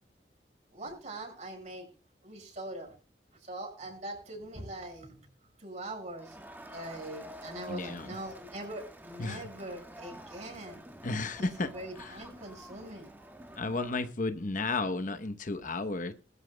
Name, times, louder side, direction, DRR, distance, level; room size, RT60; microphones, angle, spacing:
voice 1, 0.7-1.9 2.2-2.9 3.4-5.1 5.6-6.4 6.7-11.0 11.4-13.1, right 1 dB, 45° right, 6.8 m, -42 dB
Crowd, 6.2-14.1, equal, 10° right, 1.9 m, -49 dB
voice 2, 7.7-8.1 9.2-9.5 11.0-11.7 12.0-12.2 13.6-16.1, left 3 dB, 50° left, 0.9 m, -33 dB
21.5 x 13.0 x 2.2 m
head